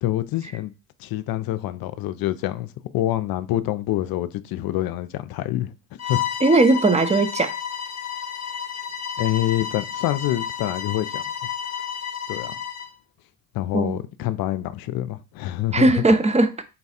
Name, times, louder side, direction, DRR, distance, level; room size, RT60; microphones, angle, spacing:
voice 1, 0.0-0.7 1.0-5.7 6.1-6.3 9.2-11.2 12.3-12.6 13.5-16.0, left 14 dB, 60° left, 0.5 m, -26 dB
Bowed string instrument, 6.0-12.9, left 8 dB, 40° left, 0.8 m, -31 dB
voice 2, 6.4-7.5 13.7-14.0 15.7-16.6, right 2 dB, 15° right, 0.6 m, -18 dB
4.0 x 2.3 x 4.2 m
hypercardioid pair, 60°, 40 cm